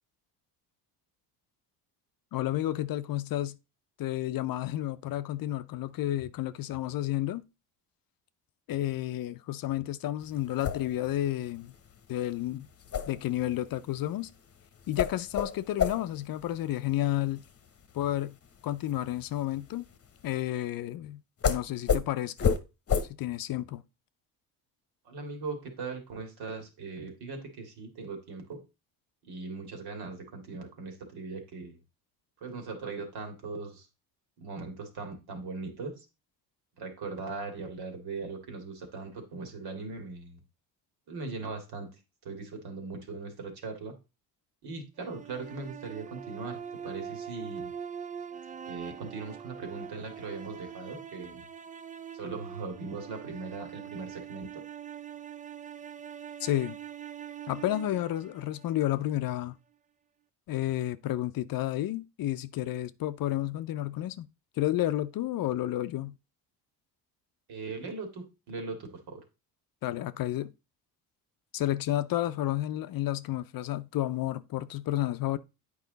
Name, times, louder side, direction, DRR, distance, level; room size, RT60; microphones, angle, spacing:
voice 1, 2.3-3.6 4.0-7.4 8.7-11.7 12.1-12.7 13.1-14.3 14.9-17.4 17.9-18.4 18.6-19.9 20.2-22.6 23.2-23.8 56.4-56.8 57.5-59.5 60.5-64.3 64.6-66.2 69.8-70.5 71.5-75.4, left 14 dB, 55° left, 0.6 m, -31 dB
sound 1, 10.2-20.3 21.4-21.6 21.9-22.0 22.4-22.6 22.9-23.0, left 7 dB, 35° left, 1.0 m, -32 dB
voice 2, 25.0-28.6 29.2-31.8 32.4-33.9 34.4-36.1 36.8-40.4 41.1-41.9 42.2-43.9 44.6-47.7 48.7-51.4 52.1-54.6 67.5-69.2, right 3 dB, 65° right, 2.4 m, -39 dB
sound 2, 45.0-59.1, right 8 dB, 20° right, 0.3 m, -43 dB
8.5 x 4.9 x 3.9 m
supercardioid pair, 85°, 41 cm